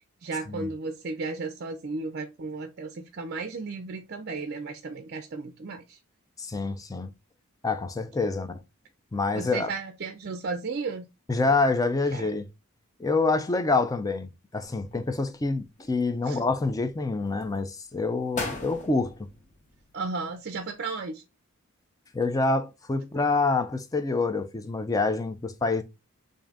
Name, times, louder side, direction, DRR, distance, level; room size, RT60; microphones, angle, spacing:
voice 1, 0.2-6.0 9.3-11.0 12.1-12.3 16.2-16.4 19.9-21.2, right 4 dB, 50° right, 0.4 m, -34 dB
voice 2, 6.4-7.1 7.6-8.6 9.1-9.7 11.3-12.4 13.0-19.1 22.1-25.8, left 3 dB, 15° left, 0.4 m, -26 dB
sound 1, 14.6-15.4 15.8-16.7 17.2-17.6 18.0-18.1 18.3-20.3 20.6-20.7, left 3 dB, 35° left, 0.8 m, -39 dB
3.7 x 2.6 x 3.3 m
head